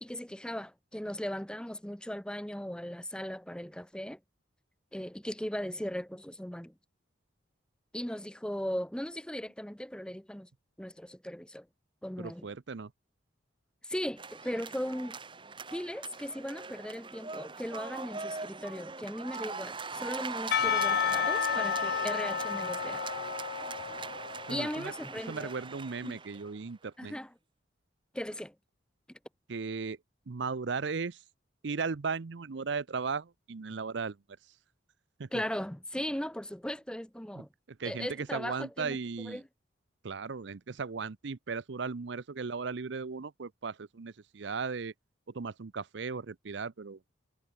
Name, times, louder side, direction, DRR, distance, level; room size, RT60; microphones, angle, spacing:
voice 1, 0.0-4.2 4.9-6.7 7.9-10.5 10.8-11.7 12.0-12.5 13.8-15.2 15.7-23.0 24.5-25.5 26.0-26.2 27.0-27.3 28.1-28.5 29.1-29.2 35.3-37.5 37.8-39.0 39.2-39.4, equal, 5° left, 0.8 m, -38 dB
voice 2, 12.2-12.9 24.5-24.9 25.3-27.1 29.5-30.0 30.3-31.2 31.6-34.2 35.2-35.3 37.4-39.4 40.0-44.9 45.3-47.0, right 5 dB, 65° right, 0.6 m, -36 dB
sound 1, 14.2-26.6, right 4 dB, 25° right, 1.7 m, -41 dB
Percussion / Church bell, 20.5-24.9, left 7 dB, 55° left, 0.4 m, -31 dB
head